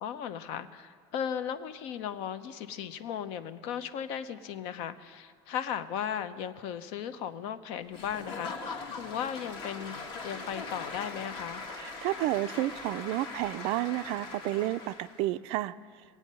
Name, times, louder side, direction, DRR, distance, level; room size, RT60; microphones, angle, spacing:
voice 1, 0.0-11.6, left 9 dB, 60° left, 12 dB, 0.7 m, -36 dB
Applause / Crowd, 7.9-15.2, left 3 dB, 45° left, 1.4 m, -41 dB
voice 2, 11.8-15.7, right 16 dB, 55° right, 14 dB, 0.4 m, -31 dB
21.0 x 8.4 x 5.4 m, 2.2 s
cardioid pair, 160°, 12 cm